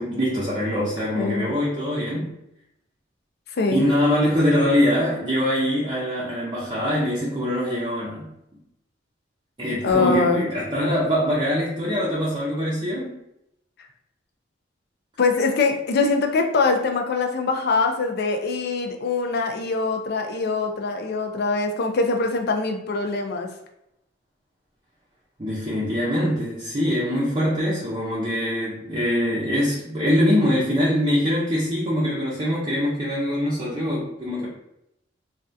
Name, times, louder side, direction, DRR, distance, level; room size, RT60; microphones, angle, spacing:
voice 1, 0.0-2.3 3.7-8.3 9.6-13.2 25.4-34.5, equal, 25° right, -7 dB, 0.6 m, -23 dB
voice 2, 1.1-1.5 3.5-3.8 9.8-10.4 15.2-23.5, left 4 dB, 55° left, 4 dB, 0.4 m, -23 dB
3.3 x 2.3 x 2.6 m, 0.80 s
head